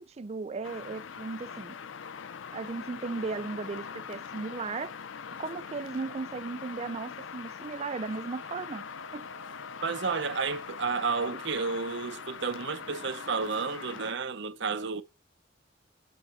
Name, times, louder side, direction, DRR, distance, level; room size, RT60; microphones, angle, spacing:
voice 1, 0.0-1.8 2.5-5.0 5.3-8.8 9.1-9.3, right 4 dB, 35° right, 0.4 m, -36 dB
sound 1, 0.6-14.1, left 6 dB, 85° left, 0.5 m, -42 dB
sound 2, 8.1-13.5, right 1 dB, 65° left, 1.7 m, -51 dB
voice 2, 9.8-15.0, right 5 dB, 65° right, 0.8 m, -31 dB
7.1 x 5.0 x 5.7 m
head